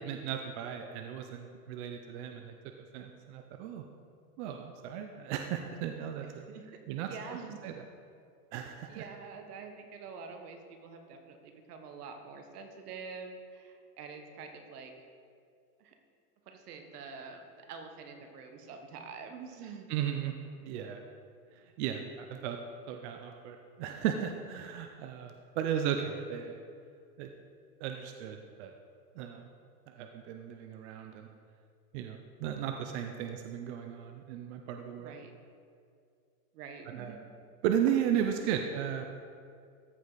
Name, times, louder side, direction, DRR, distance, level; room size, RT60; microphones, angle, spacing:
voice 1, 0.0-2.5 2.9-3.8 4.4-6.5 6.9-7.1 7.6-7.7 8.5-9.0 19.9-20.3 20.6-21.0 21.8-22.6 22.9-26.6 27.2-27.3 27.8-28.7 29.2-29.5 29.9-31.3 31.9-35.1 37.0-37.2 37.6-39.0, right 9 dB, 45° right, 5 dB, 0.6 m, -35 dB
voice 2, 6.2-6.7 7.0-7.7 8.9-14.9 15.8-15.9 16.5-19.9 35.0-35.3 36.5-37.1, right 5 dB, 75° right, 5 dB, 1.4 m, -46 dB
14.0 x 5.0 x 4.0 m, 2.3 s
supercardioid pair, 140°, 47 cm